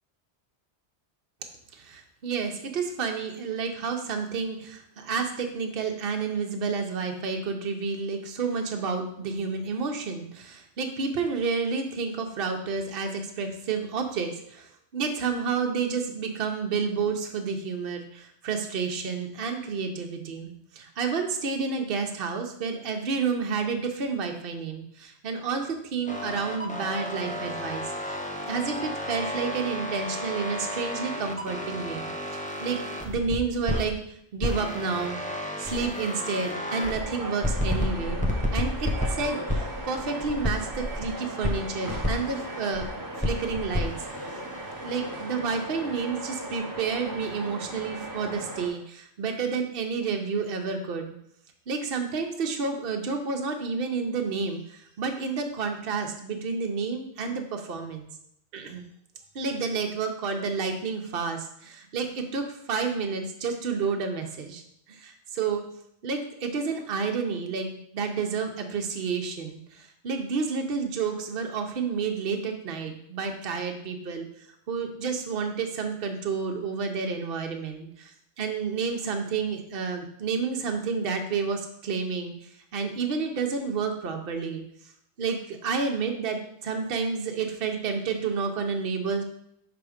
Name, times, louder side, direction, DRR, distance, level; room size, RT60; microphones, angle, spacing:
voice 1, 1.7-28.2 28.5-35.2 35.6-42.9 43.2-43.9 44.2-44.4 44.8-51.1 51.7-58.1 58.5-58.8 59.3-64.6 64.9-65.6 66.0-74.3 74.7-82.3 82.7-84.6 85.2-89.2, right 5 dB, 55° right, 3 dB, 0.9 m, -30 dB
sound 1, 26.1-33.9 34.4-37.0 37.4-41.1 41.4-42.9 43.2-45.3, left 1 dB, 10° left, 0.5 m, -32 dB
sound 2, 36.8-48.7, right 1 dB, 20° right, 0.8 m, -37 dB
5.9 x 3.5 x 5.0 m, 0.73 s
omnidirectional pair, 1.2 m